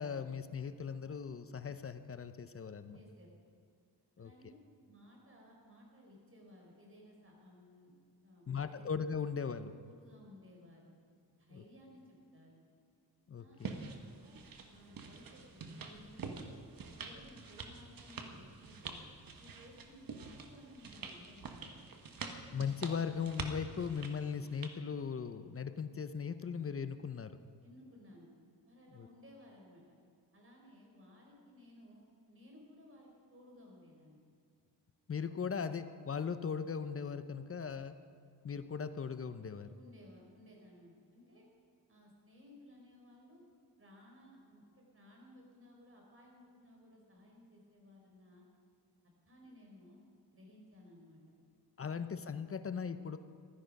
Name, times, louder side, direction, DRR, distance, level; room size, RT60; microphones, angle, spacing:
voice 1, 0.0-3.0 4.2-4.5 8.5-9.7 11.5-11.6 13.3-13.8 22.5-27.4 28.9-29.1 35.1-38.0 38.4-39.7 51.8-53.2, left 6 dB, 35° left, 11 dB, 0.7 m, -39 dB
voice 2, 2.9-3.3 4.2-4.6 4.8-7.9 8.2-8.8 9.8-10.9 11.4-12.7 13.4-13.9 14.2-14.4 14.7-19.0 19.4-21.8 22.7-22.8 27.6-28.3 28.7-29.9 30.3-34.2 39.7-41.5 41.9-43.4 43.8-48.4 49.3-50.0 50.3-51.2, left 1 dB, 35° right, -1 dB, 4.4 m, -58 dB
sound 1, 13.6-24.8, right 4 dB, 60° right, 1.4 m, -47 dB
15.5 x 12.5 x 5.3 m, 2.3 s
wide cardioid pair, 110°, 39 cm